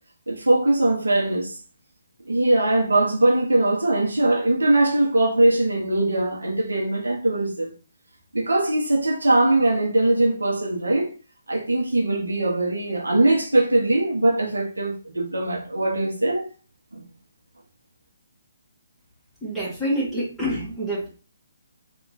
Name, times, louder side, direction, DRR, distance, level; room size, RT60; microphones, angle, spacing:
voice 1, 0.3-1.6 2.3-7.7 8.3-11.1 11.5-16.5 16.9-17.0, right 2 dB, 75° right, 1.2 m, -21 dB
voice 2, 19.4-21.1, equal, ahead, 1.8 m, -27 dB
3.6 x 2.8 x 4.1 m
figure-of-eight pair, 135°, 0 cm